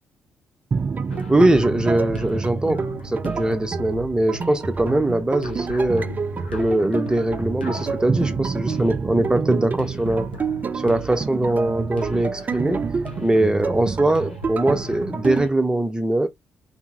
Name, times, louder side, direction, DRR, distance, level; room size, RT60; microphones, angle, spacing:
sound 1, 0.7-15.5, right 5 dB, 30° right, 0.3 m, -28 dB
sound 2, 1.1-15.5, left 2 dB, 85° left, 0.4 m, -40 dB
voice 1, 1.3-6.1 6.5-10.3 10.7-12.9 13.2-16.3, right 1 dB, 15° right, 0.7 m, -21 dB
2.7 x 2.1 x 3.5 m
figure-of-eight pair, 40°, 5 cm